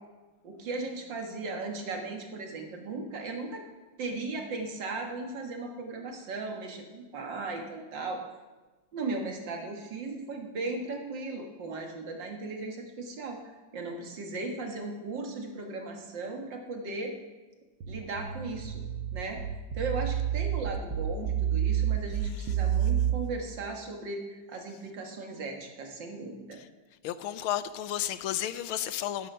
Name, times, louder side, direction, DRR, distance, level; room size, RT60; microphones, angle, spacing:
voice 1, 0.4-3.6 4.0-8.2 8.9-13.4 13.7-17.2 17.9-18.8 19.1-19.4 19.7-26.6, right 3 dB, 65° right, 3 dB, 2.3 m, -37 dB
sound 1, 17.8-23.1, right 10 dB, 85° right, 1.9 m, -29 dB
voice 2, 27.0-29.3, left 11 dB, 90° left, 13 dB, 1.6 m, -32 dB
13.0 x 12.0 x 5.6 m, 1.2 s
omnidirectional pair, 2.2 m